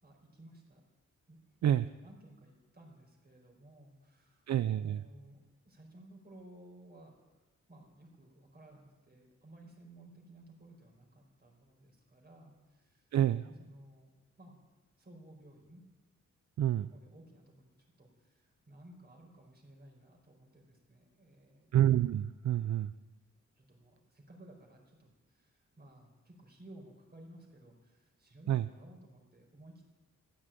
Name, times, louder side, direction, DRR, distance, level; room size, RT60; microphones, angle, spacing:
voice 1, 0.0-0.8 1.3-1.4 1.9-5.4 5.6-13.1 13.4-14.1 14.4-14.6 15.0-15.8 16.9-21.7 23.6-29.9, right 1 dB, 30° right, 1 dB, 4.7 m, -57 dB
voice 2, 4.5-5.0 13.1-13.4 16.6-16.9 21.7-22.9 28.5-28.7, right 11 dB, 65° right, 13 dB, 0.5 m, -28 dB
15.5 x 10.0 x 9.0 m, 1.2 s
wide cardioid pair, 115°, 30 cm